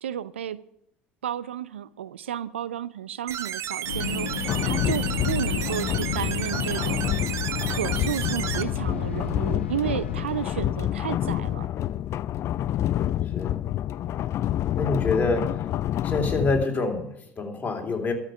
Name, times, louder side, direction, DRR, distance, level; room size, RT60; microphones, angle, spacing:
voice 1, 0.0-0.6 1.2-7.3 7.7-11.7, right 10 dB, 85° right, 0.4 m, -32 dB
sound 1, 3.3-8.6, right 10 dB, 50° right, 0.9 m, -33 dB
sound 2, 3.9-10.6, left 5 dB, 85° left, 1.3 m, -33 dB
sound 3, 4.5-16.6, left 12 dB, 50° left, 0.4 m, -28 dB
voice 2, 14.8-15.7 16.0-18.1, left 3 dB, 25° left, 3.4 m, -26 dB
13.0 x 7.3 x 8.9 m
hypercardioid pair, 65°, 6 cm